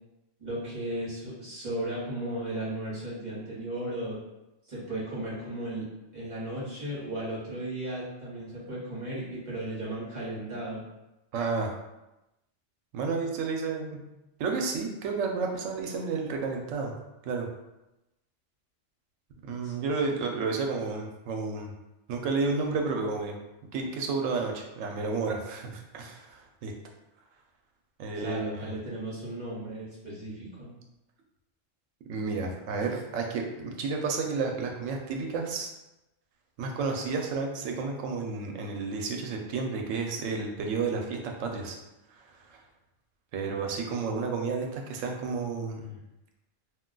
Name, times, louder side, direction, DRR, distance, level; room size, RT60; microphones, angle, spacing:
voice 1, 0.4-4.2 4.7-5.9 6.1-10.8 19.6-19.9 28.1-30.7, right 1 dB, 40° right, -8 dB, 1.1 m, -35 dB
voice 2, 11.3-11.7 12.9-14.0 14.4-16.9 17.2-17.5 19.4-21.7 22.1-23.3 23.7-26.7 28.0-28.7 32.1-35.7 36.6-41.8 42.1-42.6 43.3-46.0, right 4 dB, 90° right, 2 dB, 0.9 m, -31 dB
2.5 x 2.2 x 3.7 m, 0.95 s
omnidirectional pair, 1.3 m